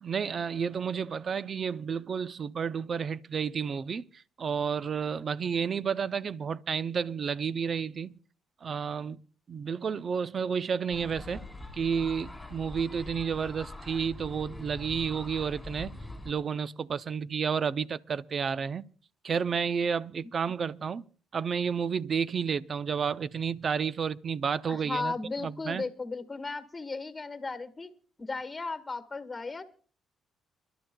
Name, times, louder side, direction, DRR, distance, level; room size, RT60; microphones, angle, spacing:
voice 1, 0.0-8.1 8.6-9.2 9.5-11.5 11.7-15.9 16.2-18.8 19.2-21.0 21.3-25.1 25.4-25.8, right 6 dB, 45° right, 0.5 m, -31 dB
sound 1, 10.9-16.3, left 2 dB, 10° left, 3.2 m, -43 dB
voice 2, 24.7-27.9 28.2-29.6, left 3 dB, 25° left, 1.6 m, -35 dB
29.0 x 12.0 x 2.3 m
cardioid pair, 90°, 0 cm